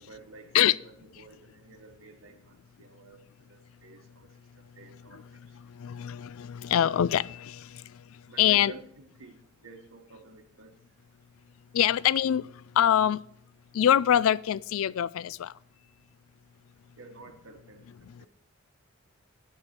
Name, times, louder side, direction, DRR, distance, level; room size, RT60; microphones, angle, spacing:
voice 1, 0.0-4.3 4.8-5.4 8.3-9.4 9.6-10.8 17.0-18.3, right 3 dB, 70° right, 1.1 m, -51 dB
voice 2, 5.8-7.8 8.4-8.7 11.7-12.5 12.8-13.2 13.7-15.5, left 10 dB, 70° left, 0.3 m, -24 dB
9.7 x 8.9 x 4.3 m
head